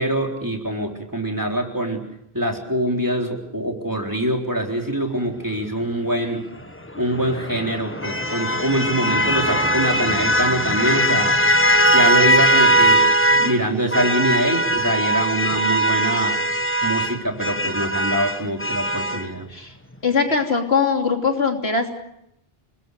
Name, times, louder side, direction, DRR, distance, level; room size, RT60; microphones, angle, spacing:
voice 1, 0.0-2.0 2.3-6.4 7.0-11.4 11.9-16.4 16.8-19.5, right 1 dB, 20° right, 2 dB, 4.0 m, -24 dB
sound 1, 6.9-13.6 13.9-19.3, right 1 dB, 10° left, 1.5 m, -20 dB
voice 2, 20.0-21.9, left 5 dB, 80° left, 4 dB, 3.3 m, -21 dB
29.0 x 21.0 x 6.5 m, 0.79 s
omnidirectional pair, 1.1 m